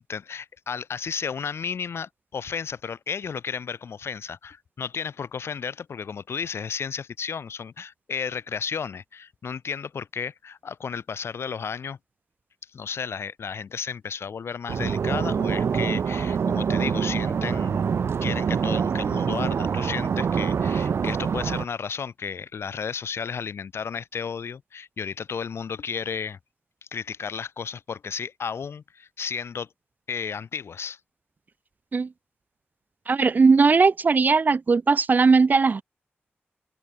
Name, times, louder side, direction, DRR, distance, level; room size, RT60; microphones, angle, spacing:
voice 1, 0.1-12.0 12.7-17.8 18.2-26.4 26.9-29.7 30.1-31.0, left 6 dB, 85° left, 4.8 m, -33 dB
sound 1, 14.7-21.7, right 6 dB, 80° right, 1.1 m, -25 dB
voice 2, 33.1-35.8, right 4 dB, 45° right, 1.6 m, -18 dB
wide cardioid pair, 155°, 4 cm